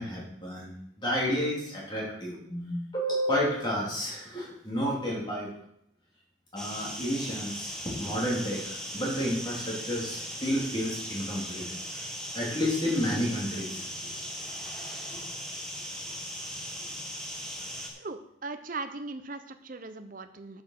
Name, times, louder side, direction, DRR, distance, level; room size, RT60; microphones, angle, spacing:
voice 1, 0.0-5.5 6.5-12.1 12.3-14.1 15.1-15.2, equal, 25° left, -4 dB, 3.1 m, -31 dB
sound 1, 6.6-17.9, equal, 5° left, 1.3 m, -38 dB
voice 2, 18.0-20.6, right 3 dB, 45° right, 8 dB, 0.7 m, -39 dB
8.1 x 6.8 x 6.7 m, 0.76 s
head